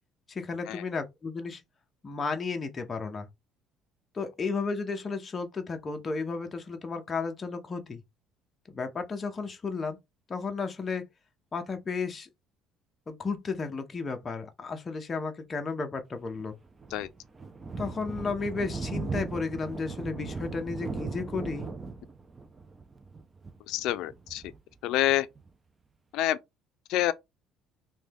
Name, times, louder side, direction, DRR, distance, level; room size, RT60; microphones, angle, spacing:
voice 1, 0.3-1.6 2.0-3.3 4.1-8.0 8.7-10.0 10.3-11.0 11.5-12.3 13.1-16.5 17.8-21.7, left 4 dB, 20° left, 0.6 m, -33 dB
Thunder, 16.4-25.5, right 4 dB, 20° right, 0.3 m, -38 dB
voice 2, 23.7-24.4 24.8-25.3 26.1-26.4 26.9-27.1, left 14 dB, 70° left, 0.4 m, -27 dB
3.1 x 2.2 x 3.4 m
cardioid pair, 155°, 0 cm